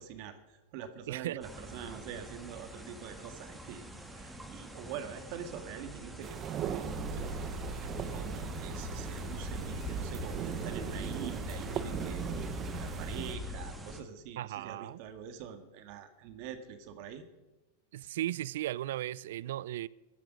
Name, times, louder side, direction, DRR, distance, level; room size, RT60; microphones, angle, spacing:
voice 1, 0.0-6.9 7.1-7.6 8.0-17.2, right 8 dB, 55° right, 1.7 m, -45 dB
voice 2, 1.1-1.4 14.4-15.0 17.9-19.9, right 14 dB, 75° right, 0.4 m, -36 dB
sound 1, 1.4-14.0, right 1 dB, 5° right, 1.8 m, -47 dB
sound 2, 6.2-13.4, right 9 dB, 35° right, 1.0 m, -39 dB
sound 3, 6.8-13.7, left 2 dB, 35° left, 4.0 m, -41 dB
15.5 x 13.0 x 5.3 m
hypercardioid pair, 125°, 0 cm